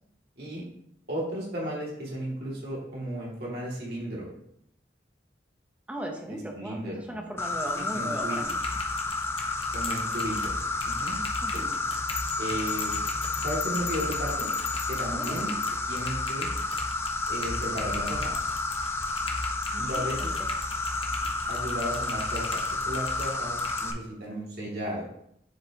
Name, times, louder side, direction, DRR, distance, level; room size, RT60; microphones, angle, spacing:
voice 1, 1.1-4.3 6.3-7.3 7.9-8.4 9.7-10.5 10.8-11.2 11.5-11.6 12.4-12.9 13.4-14.5 14.9-15.5 15.9-16.5 17.3-18.3 19.8-20.4 21.5-25.1, right 1 dB, 60° right, -5 dB, 2.4 m, -34 dB
voice 2, 5.9-8.6 11.4-11.7 15.1-15.5 19.7-20.0, right 1 dB, 5° right, 2 dB, 0.8 m, -38 dB
Insect, 7.4-23.9, left 3 dB, 15° left, 0.3 m, -31 dB
Typing, 8.4-23.9, left 2 dB, 30° left, 0.9 m, -39 dB
sound 1, 12.1-15.8, left 11 dB, 75° left, 0.6 m, -38 dB
7.5 x 4.8 x 2.9 m, 0.74 s
head